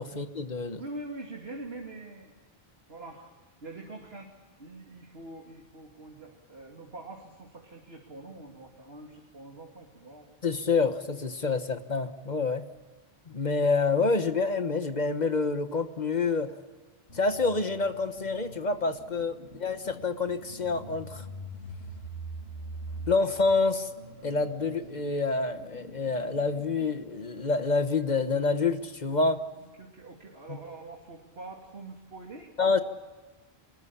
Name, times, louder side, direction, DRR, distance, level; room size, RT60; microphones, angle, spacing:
voice 1, 0.0-0.8 10.4-12.7 13.3-16.6 17.1-21.2 23.1-23.9 24.2-29.4 30.5-30.6 32.6-32.8, left 4 dB, 45° left, 9 dB, 1.5 m, -27 dB
voice 2, 0.8-2.4 2.9-4.3 4.6-10.3 19.4-19.6 23.0-23.1 29.5-32.5, right 2 dB, 70° right, 0 dB, 3.1 m, -44 dB
sound 1, 17.1-27.6, right 1 dB, 75° left, 3.7 m, -44 dB
25.5 x 21.0 x 8.6 m, 1.2 s
omnidirectional pair, 1.1 m